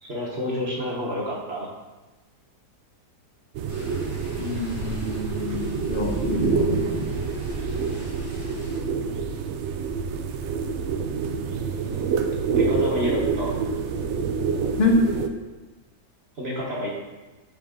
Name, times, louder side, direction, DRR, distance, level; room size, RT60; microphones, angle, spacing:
voice 1, 0.0-1.7 11.8-13.5 16.4-16.9, left 1 dB, 45° right, -4 dB, 1.2 m, -29 dB
sound 1, 3.5-15.3, right 5 dB, 90° right, 0.6 m, -27 dB
sound 2, 3.7-8.8, left 2 dB, 80° left, 2.2 m, -43 dB
voice 2, 4.4-7.2 14.8-15.0, left 2 dB, 40° left, 0 dB, 1.0 m, -26 dB
6.6 x 5.1 x 3.6 m, 1.2 s
omnidirectional pair, 1.8 m